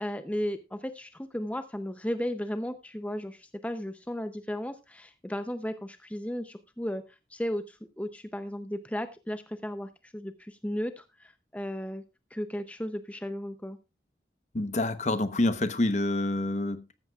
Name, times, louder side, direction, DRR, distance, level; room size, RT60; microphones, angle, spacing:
voice 1, 0.0-7.0 7.3-12.0 12.3-13.8, equal, 10° left, 0.6 m, -35 dB
voice 2, 14.5-16.9, left 2 dB, 40° left, 0.9 m, -27 dB
14.0 x 13.0 x 2.3 m
head